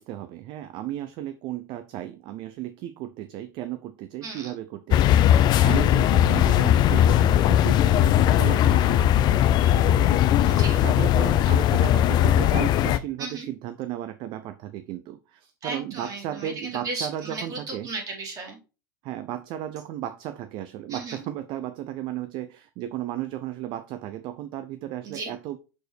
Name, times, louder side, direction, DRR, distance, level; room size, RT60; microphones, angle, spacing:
voice 1, 0.1-2.7 3.3-3.8 4.1-4.6 5.6-8.1 8.4-9.0 9.7-10.1 10.8-14.4 14.9-15.0 15.6-17.9 19.1-20.1 20.5-21.7 22.0-22.5 22.8-24.6 24.9-25.6, right 12 dB, 50° right, 11 dB, 0.6 m, -34 dB
voice 2, 4.2-4.6 10.4-10.8 13.2-13.5 15.6-18.6 20.9-21.2 25.0-25.3, right 3 dB, 35° right, 1 dB, 2.7 m, -35 dB
sound 1, 4.9-13.0, left 11 dB, 40° left, 0.4 m, -19 dB
6.2 x 4.7 x 3.3 m, 0.31 s
hypercardioid pair, 105°, 11 cm